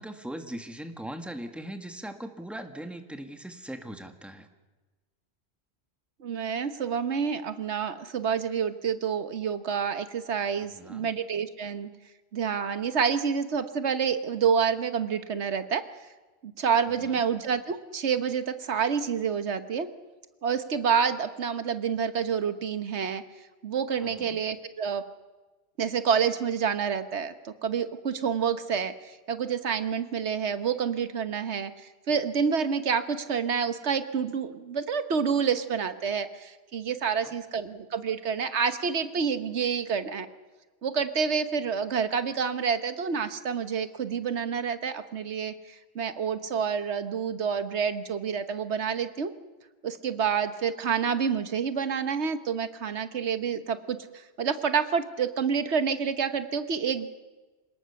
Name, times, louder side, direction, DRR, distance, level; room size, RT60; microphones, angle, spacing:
voice 1, 0.0-4.5 10.7-11.1 16.9-17.2 24.0-24.4 37.0-37.3, right 1 dB, ahead, 6 dB, 1.7 m, -40 dB
voice 2, 6.2-11.9 12.3-15.8 16.4-19.9 20.4-23.2 23.6-25.0 25.8-40.3 40.8-49.3 49.8-57.1, right 6 dB, 90° right, 11 dB, 1.4 m, -28 dB
26.5 x 18.5 x 7.0 m, 1.2 s
omnidirectional pair, 1.1 m